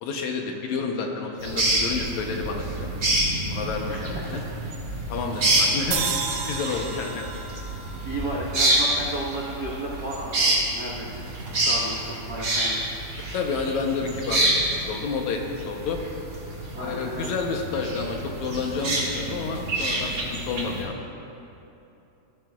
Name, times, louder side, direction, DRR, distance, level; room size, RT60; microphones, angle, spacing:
voice 1, 0.0-2.9 3.5-4.4 5.1-6.1 6.5-7.3 13.3-14.5 14.8-16.0 16.8-21.0, left 5 dB, 70° left, 2 dB, 2.0 m, -30 dB
sound 1, 1.4-20.8, right 1 dB, 35° right, 2.3 m, -27 dB
sound 2, 5.9-9.2, right 5 dB, 75° right, 1.5 m, -32 dB
voice 2, 8.0-11.2 11.6-12.8 16.7-17.3, right 1 dB, 55° right, -6 dB, 1.1 m, -33 dB
16.0 x 13.0 x 2.3 m, 2.9 s
omnidirectional pair, 3.6 m